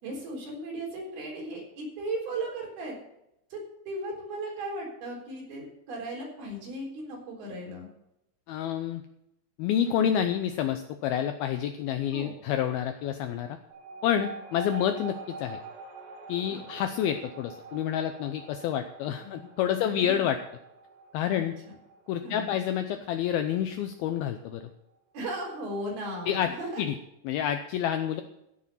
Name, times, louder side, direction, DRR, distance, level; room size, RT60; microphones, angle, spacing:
voice 1, 0.0-3.0 3.5-3.6 3.9-7.9 9.9-10.1 12.1-12.3 16.5-16.6 19.2-20.3 21.3-21.4 22.2-22.5 25.1-26.8, right 1 dB, 60° right, -2 dB, 5.7 m, -37 dB
voice 2, 8.5-9.0 9.6-13.6 14.0-15.6 16.3-20.4 21.1-21.5 22.1-24.6 26.3-26.5 26.8-27.0 27.3-28.2, left 9 dB, 90° left, 7 dB, 2.1 m, -28 dB
sound 1, 13.7-24.6, right 4 dB, 80° right, 4.4 m, -46 dB
15.5 x 7.4 x 5.7 m, 0.82 s
omnidirectional pair, 5.2 m